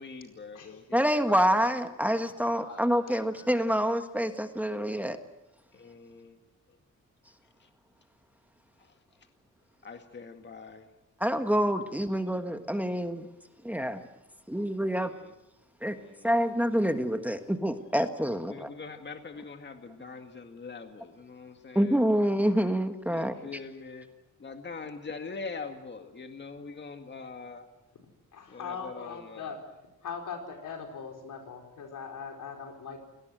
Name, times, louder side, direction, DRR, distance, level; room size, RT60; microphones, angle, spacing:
voice 1, 0.0-1.7 5.7-6.4 6.7-6.8 7.6-7.7 8.8-9.0 9.8-10.9 14.9-15.3 15.9-16.3 18.3-22.0 23.1-24.1 24.4-27.7 28.5-29.6, left 4 dB, 35° left, 6 dB, 2.1 m, -43 dB
voice 2, 0.9-5.2 11.2-13.3 13.6-14.0 14.5-15.1 15.8-16.0 16.2-18.7 21.7-23.4, equal, 5° right, 7 dB, 1.5 m, -27 dB
voice 3, 2.5-3.5 28.3-29.6 30.0-33.0, left 6 dB, 85° left, 3 dB, 4.7 m, -41 dB
28.5 x 18.5 x 7.8 m, 0.93 s
cardioid pair, 100°, 31 cm